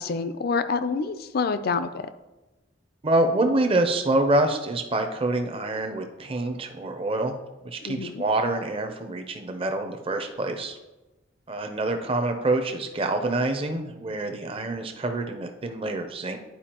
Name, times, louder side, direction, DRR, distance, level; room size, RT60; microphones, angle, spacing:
voice 1, 0.0-2.1 7.8-8.2, left 4 dB, 55° left, 12 dB, 0.4 m, -27 dB
voice 2, 3.0-7.4 7.6-10.8 11.5-16.4, right 2 dB, 30° right, 5 dB, 0.5 m, -26 dB
10.0 x 4.7 x 2.9 m, 1.1 s
head